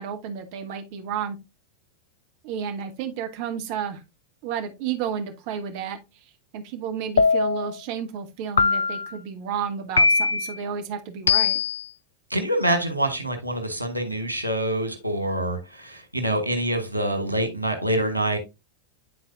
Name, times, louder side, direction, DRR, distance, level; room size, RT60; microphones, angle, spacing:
voice 1, 0.0-1.4 2.4-4.0 4.4-6.0 6.5-11.6, right 7 dB, 45° right, 1.2 m, -31 dB
sound 1, 7.2-7.8 8.6-9.2 10.0-10.5 11.3-11.8, left 4 dB, 70° left, 0.4 m, -21 dB
voice 2, 12.3-18.4, right 1 dB, 90° left, 1.6 m, -26 dB
10.0 x 4.1 x 2.7 m
figure-of-eight pair, 90°, 0 cm